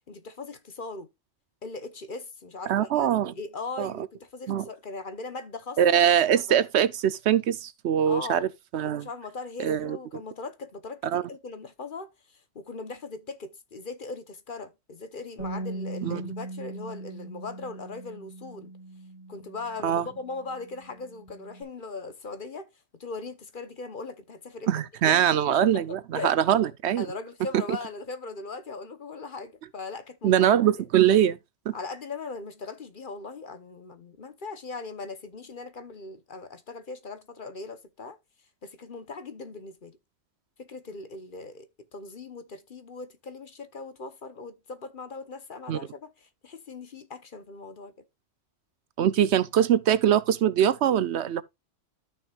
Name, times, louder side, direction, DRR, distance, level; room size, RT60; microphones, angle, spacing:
voice 1, 0.1-1.1 1.6-6.0 6.3-6.4 8.1-8.5 8.8-18.7 19.3-22.7 23.0-26.3 27.0-30.5 31.7-38.2 38.6-40.0 40.6-41.7 41.9-47.9, left 3 dB, 50° left, 1.1 m, -39 dB
voice 2, 2.7-3.3 3.8-3.9 4.5-4.7 5.8-8.5 8.7-9.1 9.6-10.0 11.1-11.2 16.0-16.2 19.8-20.0 24.7-27.1 30.2-31.4 31.7-31.8 45.7-45.8 49.0-51.4, right 10 dB, 70° right, 0.9 m, -22 dB
Bass guitar, 15.4-21.6, right 2 dB, 85° left, 3.7 m, -40 dB
13.5 x 6.0 x 2.4 m
omnidirectional pair, 1.2 m